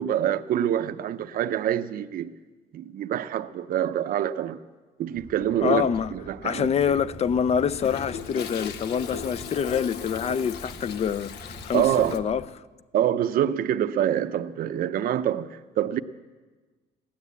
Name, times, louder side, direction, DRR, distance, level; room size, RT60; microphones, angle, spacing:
voice 1, 0.0-2.3 2.7-4.6 5.0-6.7 11.7-12.3 12.9-16.0, right 10 dB, 60° right, 0.6 m, -26 dB
sound 1, 5.1-12.5, equal, 10° left, 0.9 m, -45 dB
voice 2, 5.6-6.1 6.4-12.4, left 7 dB, 40° left, 0.5 m, -26 dB
Toilet flush, 6.9-12.2, left 7 dB, 75° left, 0.8 m, -38 dB
16.0 x 10.5 x 8.2 m
cardioid pair, 110°, 17 cm